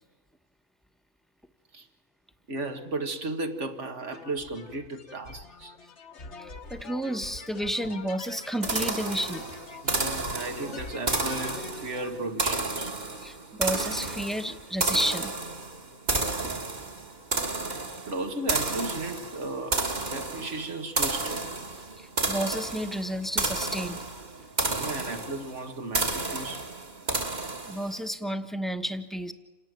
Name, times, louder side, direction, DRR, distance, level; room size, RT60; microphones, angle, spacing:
voice 1, 2.5-5.8 9.8-12.9 17.7-17.8 18.1-21.5 24.6-26.7, right 2 dB, 75° right, 2.0 m, -35 dB
sound 1, 4.1-12.3, left 4 dB, 65° left, 1.7 m, -44 dB
voice 2, 6.4-9.5 13.2-15.3 22.0-24.0 27.7-29.3, equal, ahead, 1.1 m, -31 dB
sound 2, 8.6-28.0, right 3 dB, 35° right, 1.8 m, -31 dB
28.0 x 18.5 x 9.2 m
omnidirectional pair, 1.2 m